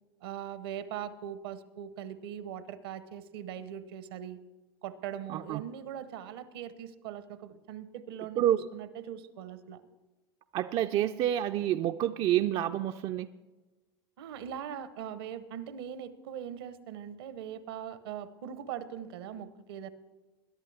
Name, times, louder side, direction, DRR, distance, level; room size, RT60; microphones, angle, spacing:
voice 1, 0.2-4.4 4.8-9.8 14.2-19.9, right 9 dB, 70° right, 15 dB, 0.8 m, -41 dB
voice 2, 5.3-5.6 8.4-8.7 10.5-13.3, right 12 dB, 45° right, 8 dB, 0.4 m, -28 dB
21.0 x 11.0 x 3.3 m, 1.2 s
hypercardioid pair, 80°, 13 cm